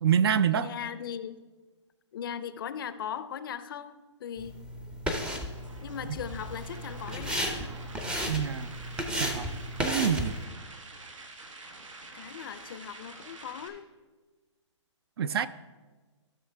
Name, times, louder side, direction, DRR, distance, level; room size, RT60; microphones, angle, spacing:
voice 1, 0.0-0.7 8.3-8.7 9.2-9.5 9.8-10.4 15.2-15.5, right 8 dB, 55° right, 16 dB, 0.4 m, -26 dB
voice 2, 0.5-1.4 2.1-4.6 5.8-7.5 10.5-10.6 12.1-13.9, left 8 dB, 45° left, 14 dB, 0.5 m, -39 dB
sound 1, 4.4-10.4, equal, 5° right, 0.6 m, -34 dB
sound 2, 5.5-13.7, right 3 dB, 85° right, 1.5 m, -47 dB
14.5 x 6.4 x 3.3 m, 1.3 s
hypercardioid pair, 150°, 16 cm